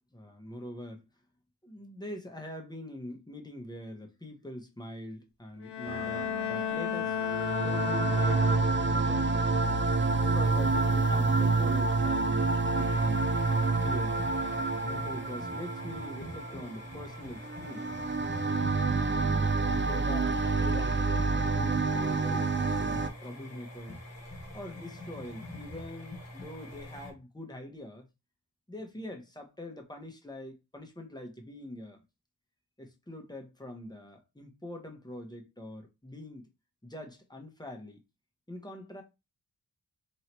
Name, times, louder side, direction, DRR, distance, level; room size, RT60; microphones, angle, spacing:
voice 1, 0.1-1.1 1.6-7.2 7.6-9.7 10.2-13.2 13.8-18.0 19.0-24.0 24.5-28.1 28.7-32.0 32.8-36.5 36.8-38.0 38.5-39.0, left 1 dB, 10° left, 1.0 m, -44 dB
Bowed string instrument, 5.6-9.0, left 9 dB, 70° left, 0.7 m, -33 dB
sound 1, 5.9-23.1, right 3 dB, 30° right, 0.4 m, -28 dB
sound 2, 12.7-27.1, left 1 dB, 35° left, 1.2 m, -45 dB
3.2 x 2.8 x 4.4 m
wide cardioid pair, 85°, 43 cm